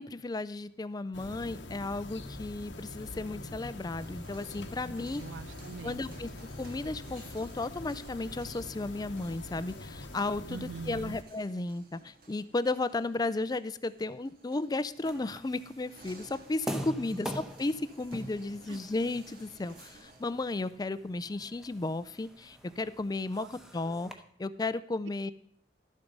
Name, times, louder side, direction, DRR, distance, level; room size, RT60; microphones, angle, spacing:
voice 1, 0.0-5.2 5.8-6.3 6.6-24.1 24.4-25.3, left 2 dB, 20° left, 15 dB, 0.4 m, -34 dB
sound 1, 1.1-11.2, left 2 dB, 85° left, 1.0 m, -44 dB
sound 2, 3.9-20.3, right 3 dB, 55° right, 1.7 m, -57 dB
voice 2, 5.2-6.0 10.5-11.2 17.1-17.3 18.7-18.8 23.4-23.5, right 5 dB, 85° right, 21 dB, 0.3 m, -43 dB
sound 3, 15.0-24.1, equal, 5° right, 1.0 m, -44 dB
12.5 x 7.0 x 5.3 m, 0.63 s
head